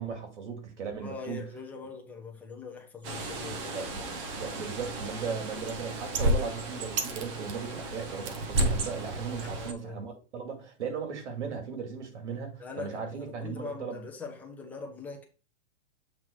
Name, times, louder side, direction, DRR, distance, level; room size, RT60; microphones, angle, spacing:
voice 1, 0.0-1.4 3.7-14.0, right 6 dB, 80° right, 2.6 m, -37 dB
voice 2, 1.0-3.9 9.4-10.0 12.6-15.2, left 4 dB, 5° left, 0.6 m, -42 dB
Bird, 3.0-9.7, right 1 dB, 25° right, 0.8 m, -32 dB
7.8 x 3.8 x 4.5 m
supercardioid pair, 170°, 35 cm